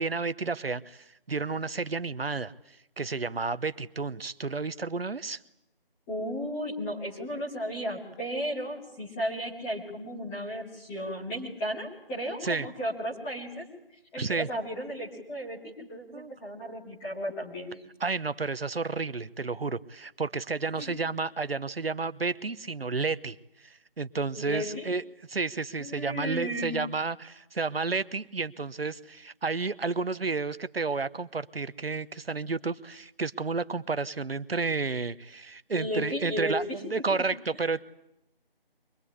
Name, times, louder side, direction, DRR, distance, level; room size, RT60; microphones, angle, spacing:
voice 1, 0.0-5.4 12.4-12.7 14.2-14.5 16.1-16.3 18.0-25.0 25.3-37.8, right 4 dB, 80° right, 14 dB, 1.1 m, -31 dB
voice 2, 6.1-13.6 14.1-17.8 20.8-20.9 24.4-24.9 25.8-26.8 35.7-36.8, equal, 5° left, -5 dB, 1.2 m, -34 dB
23.5 x 20.5 x 9.8 m, 0.82 s
figure-of-eight pair, 165°, 30 cm